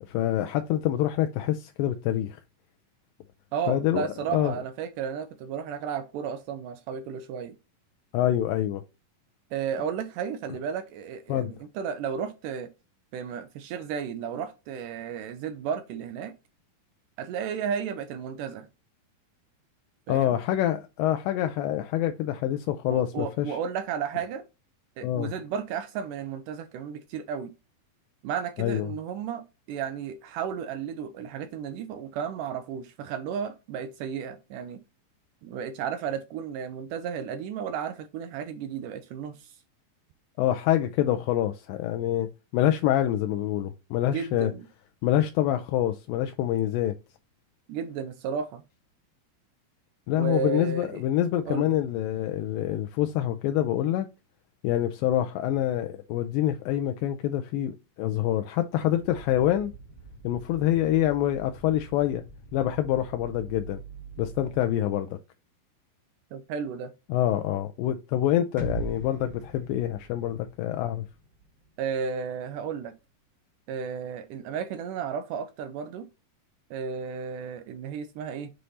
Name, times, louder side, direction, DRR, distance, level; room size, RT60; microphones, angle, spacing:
voice 1, 0.1-2.4 3.7-4.1 4.3-4.5 8.1-8.8 11.3-11.5 20.1-23.6 25.0-25.3 28.6-28.9 40.4-44.5 45.0-46.9 50.1-54.1 54.6-59.7 60.2-62.2 62.5-63.8 64.2-65.2 67.1-71.1, left 12 dB, 80° left, 2.2 m, -26 dB
voice 2, 3.5-7.5 9.5-12.7 13.1-16.3 17.2-18.7 20.1-20.4 22.9-24.4 25.0-27.5 28.2-29.4 29.7-34.8 35.4-39.5 44.1-44.7 47.7-48.6 50.1-51.0 51.5-51.7 66.3-66.9 71.8-72.9 73.7-76.1 76.7-78.5, right 7 dB, 80° right, 2.0 m, -33 dB
sound 1, 58.9-64.7, right 5 dB, 45° left, 0.4 m, -46 dB
sound 2, 68.6-72.5, right 3 dB, 35° right, 2.0 m, -40 dB
7.7 x 3.3 x 4.0 m
omnidirectional pair, 4.1 m